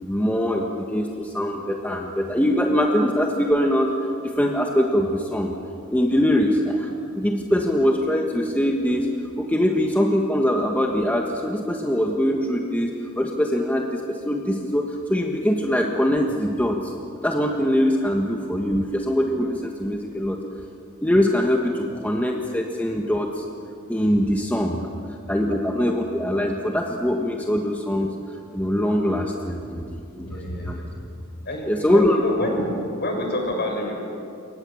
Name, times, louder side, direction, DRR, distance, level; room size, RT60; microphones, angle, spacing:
voice 1, 0.0-3.9 4.2-5.5 5.9-9.1 9.4-12.9 13.2-16.9 17.2-20.4 21.0-23.4 23.9-24.8 25.3-28.1 28.5-30.3 30.6-30.8 31.7-32.2, equal, 5° left, 1 dB, 1.5 m, -22 dB
voice 2, 30.2-30.9 31.4-32.7 33.0-33.9, left 1 dB, 50° left, 1 dB, 6.7 m, -28 dB
28.0 x 24.0 x 7.3 m, 2.5 s
head